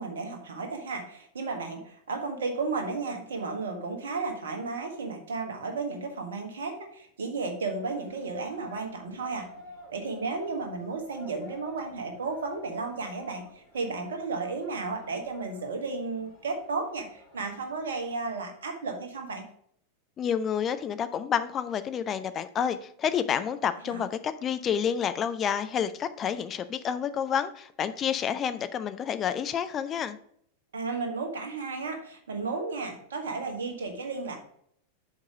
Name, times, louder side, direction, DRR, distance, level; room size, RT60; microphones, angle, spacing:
voice 1, 0.0-9.5 9.9-19.4 23.8-24.1 30.7-34.4, right 4 dB, 65° right, 5 dB, 1.4 m, -33 dB
sound 1, 8.1-18.3, equal, 45° left, 2.1 m, -54 dB
voice 2, 20.2-30.2, left 8 dB, 25° left, 11 dB, 0.5 m, -29 dB
6.9 x 4.8 x 5.1 m, 0.66 s
figure-of-eight pair, 90°, 0 cm